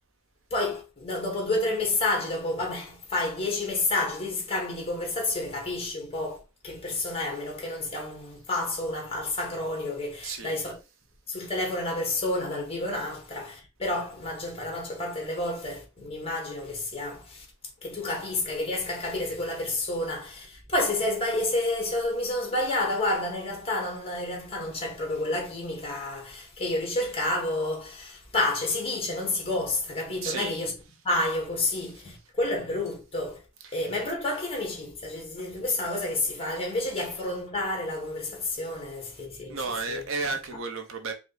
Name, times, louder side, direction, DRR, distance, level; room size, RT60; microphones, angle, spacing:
voice 1, 0.5-10.8 11.3-17.5 17.8-30.8 31.0-33.4 33.7-39.6 39.9-40.0, left 2 dB, 30° left, 1.6 m, -30 dB
voice 2, 10.2-10.6 30.2-30.5 31.9-32.0 33.6-33.9 34.2-34.3 36.9-37.1 39.5-41.1, right 4 dB, 70° right, 0.8 m, -33 dB
5.0 x 2.3 x 4.0 m
head